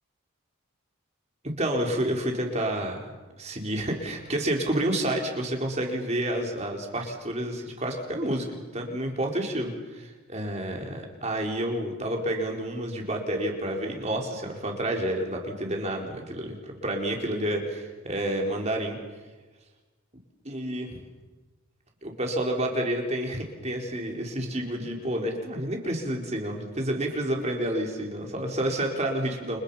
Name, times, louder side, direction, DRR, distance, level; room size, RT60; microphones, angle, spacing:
voice 1, 1.6-3.0 3.4-19.0 20.4-21.0 22.0-29.6, right 1 dB, 30° right, 1 dB, 4.6 m, -29 dB
29.5 x 29.0 x 5.9 m, 1.3 s
head